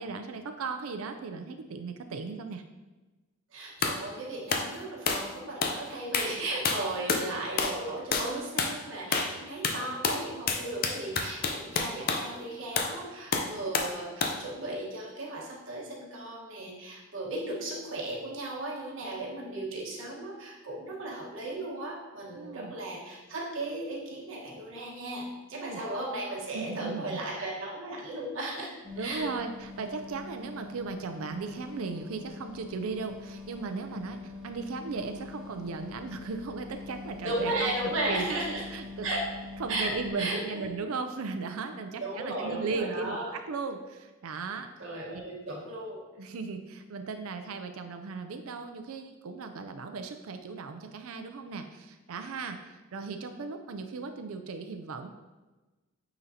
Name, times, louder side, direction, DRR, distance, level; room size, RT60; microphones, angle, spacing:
voice 1, 0.0-2.6 22.3-22.8 25.6-25.8 26.5-27.2 29.0-37.7 38.1-38.3 38.7-39.1 39.6-44.7 46.2-55.1, right 4 dB, 85° right, 7 dB, 0.5 m, -37 dB
voice 2, 3.5-28.7 29.0-29.3 37.2-38.6 39.0-39.3 39.7-40.7 42.0-43.3 44.8-46.0, right 1 dB, 65° right, -4 dB, 1.3 m, -35 dB
sound 1, 3.8-4.0 4.5-4.7 5.1-5.3 5.6-5.8 6.1-6.4 6.6-7.3 7.6-7.8 8.1-8.3 8.6-8.8 9.1-9.4 9.6-12.3 12.8-13.0 13.3-13.9 14.2-14.4, left 4 dB, 45° left, 0.5 m, -29 dB
sound 2, 28.8-40.1, left 3 dB, 20° left, 2.0 m, -44 dB
8.7 x 3.9 x 2.8 m, 1.2 s
head